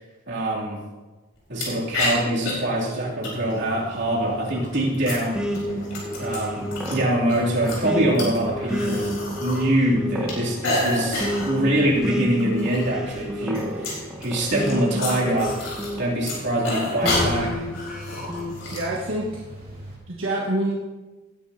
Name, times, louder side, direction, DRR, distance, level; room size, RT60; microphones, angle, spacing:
voice 1, 0.3-0.8 1.5-5.4 6.2-9.1 9.4-15.6 16.0-17.7, right 1 dB, 60° right, -5 dB, 2.9 m, -24 dB
sound 1, 1.6-1.7 1.9-2.5 3.2-3.7 4.5-7.0 7.3-9.6 9.8-11.5 12.0-12.1 12.4-12.9 13.1-15.9 16.2-18.8, left 2 dB, 70° left, 4.3 m, -29 dB
sound 2, 3.3-20.0, right 1 dB, 30° right, 4.6 m, -41 dB
sound 3, 5.3-16.4 17.0-18.6, equal, 5° right, 1.0 m, -30 dB
voice 2, 18.7-19.4 20.1-20.7, right 1 dB, 80° right, -4 dB, 1.4 m, -26 dB
18.5 x 9.7 x 2.8 m, 1.2 s
head